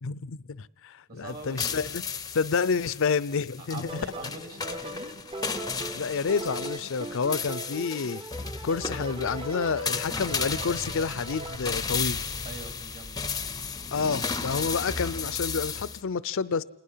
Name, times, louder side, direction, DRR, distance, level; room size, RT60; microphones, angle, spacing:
voice 1, 0.0-2.0 2.3-4.0 5.9-8.2 8.6-12.3 13.9-16.6, left 5 dB, 65° left, 0.6 m, -29 dB
voice 2, 1.1-1.8 3.6-5.2 12.4-13.2, right 2 dB, 45° right, 2.9 m, -42 dB
sound 1, 1.3-16.0, left 5 dB, 20° left, 0.6 m, -34 dB
sound 2, 3.9-11.6, right 1 dB, 25° right, 0.9 m, -39 dB
28.0 x 20.0 x 5.7 m
head